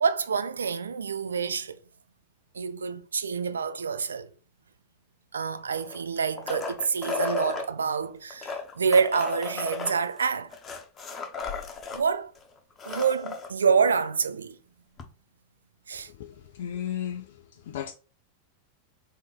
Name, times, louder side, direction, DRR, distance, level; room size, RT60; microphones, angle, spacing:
voice 1, 0.0-1.8 2.5-4.3 5.3-10.5 11.9-12.3 12.9-14.6 15.9-16.1, right 6 dB, 70° right, 0.4 m, -27 dB
sound 1, 5.8-7.7 8.3-12.0 12.4-12.5 12.7-13.5 15.0-15.1, left 4 dB, 25° left, 0.8 m, -34 dB
voice 2, 16.1-17.9, left 10 dB, 55° left, 0.4 m, -35 dB
3.8 x 3.5 x 3.9 m
figure-of-eight pair, 90°, 0 cm